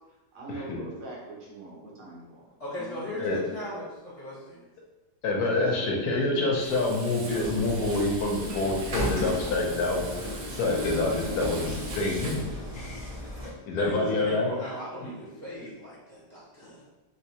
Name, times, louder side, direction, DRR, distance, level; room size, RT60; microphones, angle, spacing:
voice 1, 0.3-3.4 5.5-6.0, right 2 dB, 80° right, -5 dB, 1.6 m, -43 dB
voice 2, 2.6-4.7 13.8-16.8, equal, 25° left, -9 dB, 1.2 m, -37 dB
voice 3, 5.2-12.5 12.7-13.0 13.4-14.5, left 2 dB, 75° left, 0 dB, 1.2 m, -27 dB
Frying (food), 6.6-12.5, right 2 dB, 60° right, 0.7 m, -42 dB
sound 1, 7.4-13.5, equal, 35° right, 1.0 m, -35 dB
3.3 x 3.1 x 2.8 m, 1.1 s
omnidirectional pair, 1.7 m